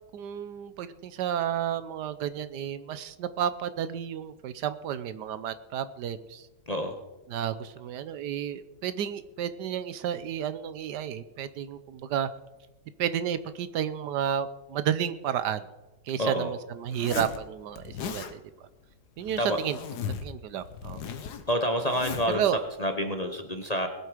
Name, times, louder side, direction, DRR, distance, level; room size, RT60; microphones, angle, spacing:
voice 1, 0.1-6.4 7.3-12.3 13.0-15.7 16.1-18.4 19.2-19.8 20.2-21.0 22.3-22.6, right 9 dB, 80° right, 13 dB, 1.3 m, -31 dB
voice 2, 16.2-16.5 19.4-19.6 21.5-22.4 22.8-23.9, equal, 30° left, 5 dB, 0.8 m, -28 dB
Zipper (clothing), 16.9-17.4 17.8-18.3 19.2-20.3 20.6-22.4, left 7 dB, 70° left, 1.6 m, -37 dB
20.0 x 8.0 x 5.0 m, 1.1 s
omnidirectional pair, 1.8 m